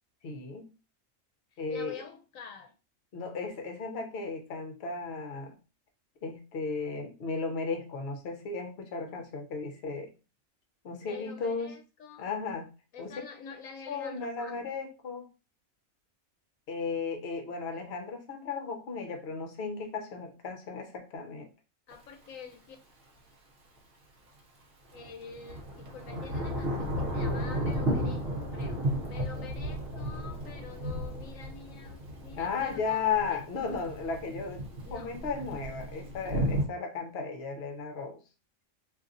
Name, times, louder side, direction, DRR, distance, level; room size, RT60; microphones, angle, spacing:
voice 1, 0.2-0.7 1.6-2.0 3.1-5.6 6.2-10.1 10.8-11.8 12.2-12.7 13.0-13.1 13.9-15.2 16.7-21.5 32.4-38.2, left 4 dB, 55° left, 0.9 m, -35 dB
voice 2, 1.5-2.7 11.0-12.3 12.9-14.7 21.9-22.8 24.9-33.4 34.8-35.1, left 6 dB, 80° left, 1.0 m, -47 dB
Thunder / Rain, 21.9-22.0 24.9-36.7, equal, 50° right, 0.9 m, -34 dB
3.9 x 2.7 x 2.5 m
omnidirectional pair, 1.4 m